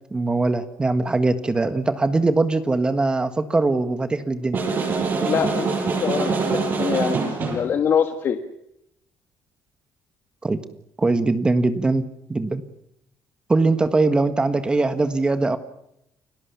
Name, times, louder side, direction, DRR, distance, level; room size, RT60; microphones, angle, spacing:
voice 1, 0.1-4.6 10.4-10.6 11.0-12.0 12.3-12.6 13.5-15.6, right 3 dB, 15° right, 10 dB, 1.6 m, -21 dB
sound 1, 4.5-7.7, right 4 dB, 40° right, 7.5 m, -24 dB
voice 2, 5.2-8.4, left 8 dB, 45° left, 6 dB, 1.7 m, -24 dB
29.5 x 19.0 x 7.0 m, 0.80 s
cardioid pair, 145°, 5 cm